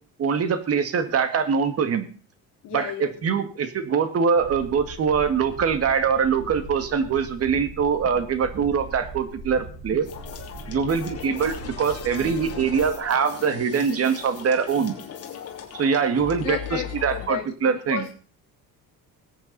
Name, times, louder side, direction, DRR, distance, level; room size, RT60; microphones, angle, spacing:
voice 1, 0.2-2.1 2.7-10.1 10.7-15.0 15.7-18.0, right 6 dB, 45° right, 10 dB, 1.9 m, -23 dB
voice 2, 2.6-3.4 16.4-18.1, left 11 dB, 60° left, 5 dB, 1.4 m, -33 dB
sound 1, 4.3-13.0, right 3 dB, 65° right, 4.2 m, -40 dB
sound 2, 10.0-17.3, left 8 dB, 45° left, 2.8 m, -38 dB
20.5 x 8.7 x 4.1 m, 0.40 s
cardioid pair, 140°, 35 cm